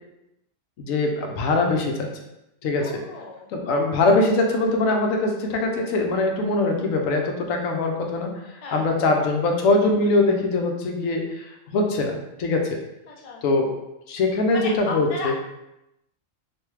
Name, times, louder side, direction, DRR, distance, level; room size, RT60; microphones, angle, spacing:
voice 1, 0.8-2.1 2.6-2.9 3.5-12.8 13.4-13.7 14.1-15.3, left 2 dB, 85° left, 2 dB, 1.0 m, -22 dB
voice 2, 2.8-3.5 8.6-8.8 13.1-13.4 14.5-15.3, left 3 dB, 45° left, -2 dB, 0.5 m, -34 dB
3.4 x 2.6 x 3.1 m, 0.89 s
omnidirectional pair, 1.4 m